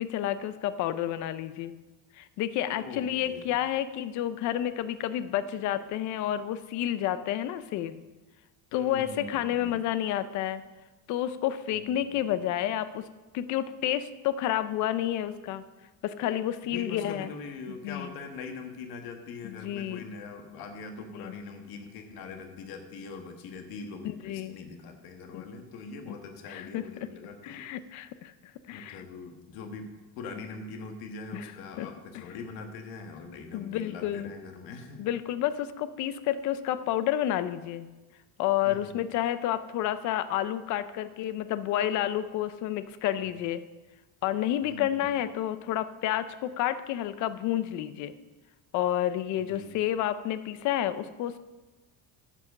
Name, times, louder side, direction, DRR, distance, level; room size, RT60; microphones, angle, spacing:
voice 1, 0.0-1.7 2.2-8.0 8.7-10.6 11.1-13.1 13.3-15.6 16.0-17.3 17.8-18.1 19.4-20.0 21.1-21.3 24.0-24.6 25.3-25.4 26.1-26.2 26.5-26.9 27.4-28.3 28.7-29.0 31.3-31.5 31.8-31.9 32.1-32.2 33.5-34.3 35.0-37.9 38.4-43.6 44.2-48.1 48.7-51.4, left 12 dB, 50° left, 13 dB, 0.6 m, -30 dB
voice 2, 2.6-3.5 8.7-9.8 11.7-12.2 16.6-27.7 28.7-29.9 30.2-35.0 38.6-39.0 44.6-45.1 49.4-49.8, left 4 dB, 70° left, 5 dB, 1.6 m, -42 dB
10.0 x 6.1 x 6.5 m, 1.2 s
cardioid pair, 175°, 38 cm